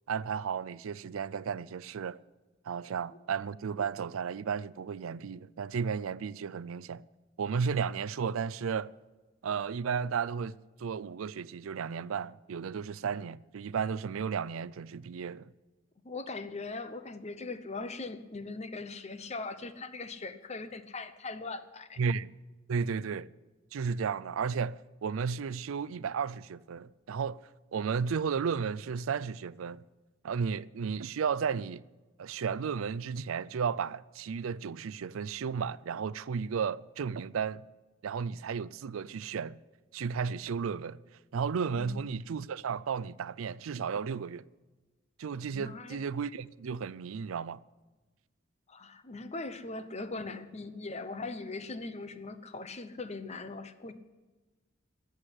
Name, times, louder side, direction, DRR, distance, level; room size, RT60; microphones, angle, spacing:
voice 1, 0.1-2.2 2.7-7.0 7.4-8.9 9.4-15.5 22.0-22.3 22.7-23.3 23.7-27.4 27.7-29.8 30.2-31.8 32.2-37.6 38.0-39.6 39.9-41.0 41.3-44.4 45.2-47.6, right 6 dB, 80° right, 0.4 m, -33 dB
voice 2, 16.0-22.0 41.7-42.2 45.5-46.0 48.7-53.9, left 3 dB, 35° left, 0.8 m, -40 dB
14.0 x 8.0 x 9.8 m
head